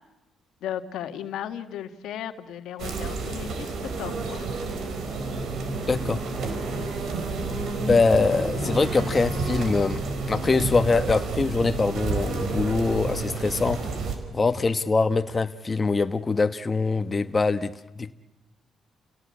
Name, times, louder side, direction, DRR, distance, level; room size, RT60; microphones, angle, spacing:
voice 1, 0.6-4.5, left 10 dB, 80° left, 8 dB, 1.7 m, -35 dB
sound 1, 2.8-14.2, right 3 dB, 70° right, 4.7 m, -30 dB
voice 2, 5.8-6.2 7.9-13.8 14.3-18.1, left 4 dB, 30° left, 9 dB, 1.2 m, -23 dB
30.0 x 18.0 x 8.5 m, 1.1 s
cardioid pair, 90°, 0 cm